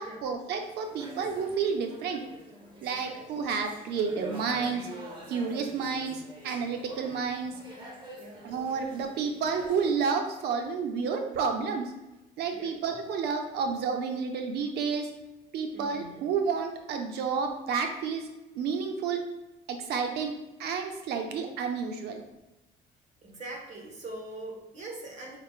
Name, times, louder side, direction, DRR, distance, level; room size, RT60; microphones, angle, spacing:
voice 1, 0.0-2.2 2.8-4.9 5.3-7.6 8.4-11.9 12.4-15.1 15.5-18.2 18.6-19.2 19.7-20.3 20.6-22.2, right 5 dB, 75° right, 5 dB, 0.7 m, -30 dB
sound 1, 0.6-9.9, right 1 dB, 30° right, 1.2 m, -46 dB
voice 2, 2.8-3.3 8.1-8.6 12.5-12.7 15.7-16.2 23.2-25.4, right 2 dB, 45° right, -1 dB, 1.4 m, -43 dB
5.5 x 3.5 x 2.4 m, 1.0 s
cardioid pair, 110°, 17 cm